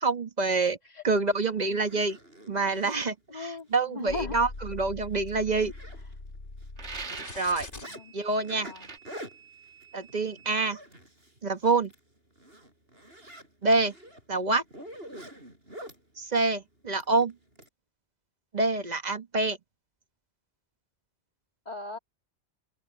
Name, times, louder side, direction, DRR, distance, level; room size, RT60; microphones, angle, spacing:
voice 1, 0.0-0.8 1.0-2.2 2.5-5.7 7.4-7.7 8.1-8.7 9.9-10.8 11.4-11.9 13.6-13.9 14.3-14.6 16.2-17.3 18.5-19.6, right 3 dB, 40° right, 1.3 m, -26 dB
Zipper (clothing), 1.2-1.3 1.7-3.0 3.6-3.7 4.1-4.2 4.6-4.7 5.0-6.4 6.6-8.0 8.4-11.4 11.7-12.0 12.4-16.0 17.0-17.7, equal, 60° right, 8.2 m, -46 dB
voice 2, 3.3-4.4 7.9-8.1 8.6-8.9 21.7-22.0, left 3 dB, 40° left, 2.3 m, -38 dB
sound 1, 4.1-10.7, left 2 dB, 90° left, 3.7 m, -44 dB
sound 2, 6.8-7.6 8.7-9.0, right 4 dB, 75° right, 2.2 m, -40 dB
open air
omnidirectional pair, 1.2 m